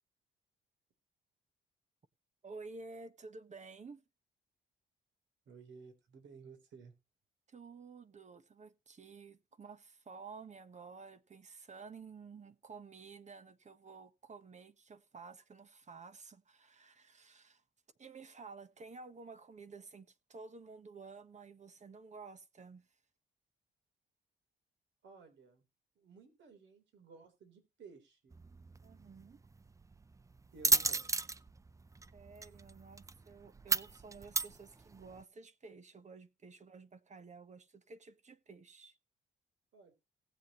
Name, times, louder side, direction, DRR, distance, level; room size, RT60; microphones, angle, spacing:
voice 1, 2.4-4.0 7.5-17.6 18.0-23.0 28.8-29.4 32.1-39.0, right 4 dB, 35° right, 1.3 m, -52 dB
voice 2, 5.5-6.9 25.0-25.6 26.0-28.3 30.5-31.1 39.7-39.9, right 5 dB, 70° right, 3.9 m, -56 dB
sound 1, 28.3-35.2, right 3 dB, 15° right, 0.5 m, -35 dB
18.5 x 7.2 x 3.1 m
cardioid pair, 90°, 20 cm